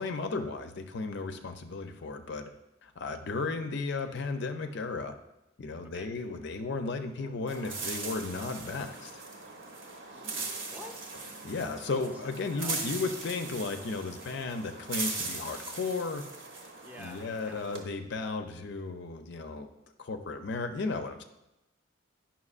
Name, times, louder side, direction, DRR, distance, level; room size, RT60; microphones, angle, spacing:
voice 1, 0.0-2.5 2.8-5.2 5.6-9.1 11.4-16.3 17.0-19.7 20.0-21.2, left 3 dB, 60° left, 7 dB, 0.5 m, -34 dB
sound 1, 7.5-17.8, right 3 dB, 65° right, 1.0 m, -39 dB
voice 2, 10.1-11.1 12.0-12.1 12.5-12.9 16.8-17.7, equal, 10° right, 2 dB, 0.7 m, -48 dB
9.5 x 5.8 x 2.4 m, 0.93 s
head